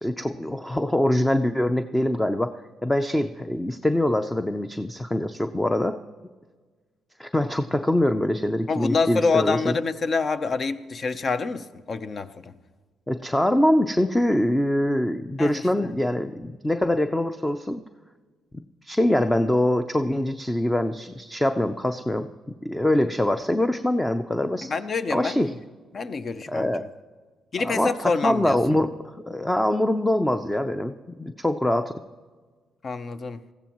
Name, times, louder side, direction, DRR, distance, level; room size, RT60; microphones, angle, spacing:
voice 1, 0.0-2.5 2.8-6.0 7.2-9.7 13.1-17.8 18.8-22.3 22.6-24.7 25.1-25.5 26.5-26.9 27.6-32.0, left 1 dB, 10° left, 8 dB, 0.5 m, -24 dB
voice 2, 8.7-12.5 15.4-15.6 24.6-25.6 25.9-26.7 27.5-28.6 32.8-33.4, left 4 dB, 45° left, 12 dB, 0.7 m, -26 dB
20.0 x 15.0 x 3.0 m, 1.4 s
cardioid pair, 90°, 0 cm